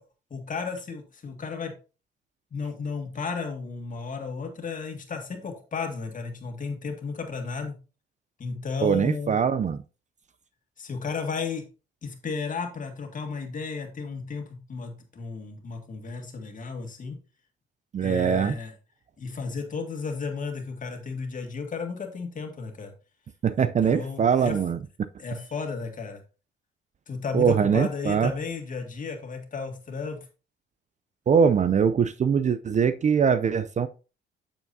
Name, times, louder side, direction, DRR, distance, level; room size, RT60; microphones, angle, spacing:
voice 1, 0.3-1.7 2.5-7.8 8.4-9.4 10.8-11.7 12.0-17.2 18.0-18.7 19.2-22.9 23.6-24.6 25.2-26.2 27.1-30.3, left 5 dB, 40° left, 2.0 m, -34 dB
voice 2, 8.8-9.8 17.9-18.6 23.4-24.8 27.3-28.3 31.3-33.9, right 7 dB, 35° right, 0.5 m, -22 dB
8.1 x 7.1 x 2.7 m
cardioid pair, 90°, 20 cm